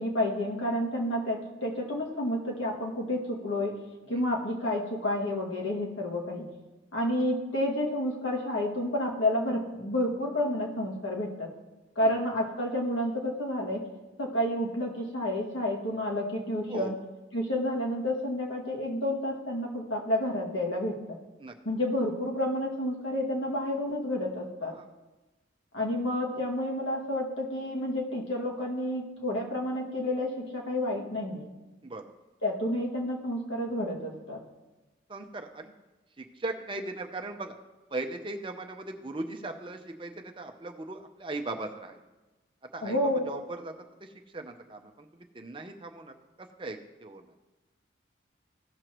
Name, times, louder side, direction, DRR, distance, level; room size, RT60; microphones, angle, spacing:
voice 1, 0.0-3.7 4.1-6.4 6.9-11.5 12.0-13.8 14.2-16.9 17.3-21.2 21.7-24.7 25.7-31.5 32.4-34.4 42.8-43.3, left 1 dB, 85° left, -2 dB, 2.0 m, -30 dB
voice 2, 35.1-35.7 36.2-37.5 37.9-42.0 42.7-43.0 43.3-43.7 44.0-47.2, right 2 dB, 25° right, 5 dB, 0.6 m, -39 dB
16.5 x 6.3 x 3.0 m, 1.1 s
head